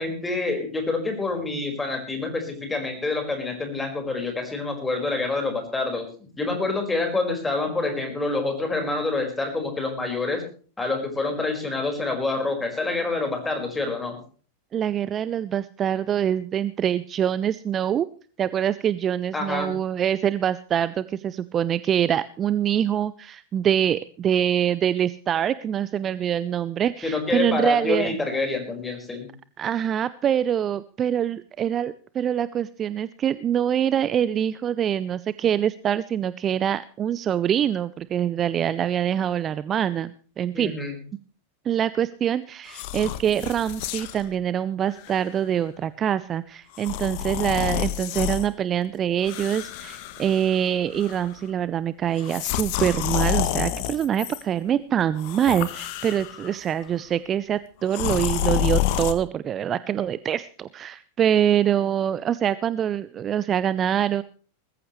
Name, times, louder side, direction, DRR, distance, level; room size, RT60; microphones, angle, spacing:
voice 1, 0.0-6.1 6.4-10.4 10.8-14.2 19.3-19.7 27.0-29.3 40.5-41.0, left 3 dB, 10° left, 4 dB, 5.0 m, -27 dB
voice 2, 14.7-18.1 18.4-28.2 29.6-40.1 40.4-40.7 41.6-64.2, right 9 dB, 25° right, 17 dB, 0.6 m, -24 dB
sound 1, 42.7-44.2 44.9-45.1 46.7-48.5 49.2-50.7 50.9-51.4 52.2-54.4 55.2-56.5 57.9-59.1, left 13 dB, 45° left, 1.4 m, -28 dB
20.5 x 14.5 x 3.2 m, 0.40 s
figure-of-eight pair, 90°, 0 cm